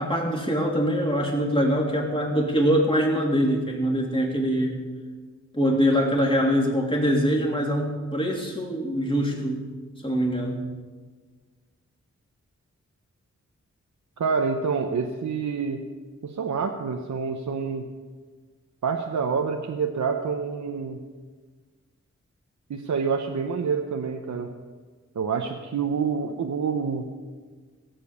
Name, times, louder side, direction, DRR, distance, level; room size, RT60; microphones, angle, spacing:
voice 1, 0.0-4.8 5.5-9.7 10.0-10.6, equal, 20° left, -1 dB, 3.1 m, -23 dB
voice 2, 14.2-15.8 16.2-17.8 18.8-21.0 22.7-24.5 25.1-27.1, right 5 dB, 75° right, 3 dB, 0.9 m, -27 dB
17.0 x 7.6 x 7.1 m, 1.4 s
wide cardioid pair, 70°, 29 cm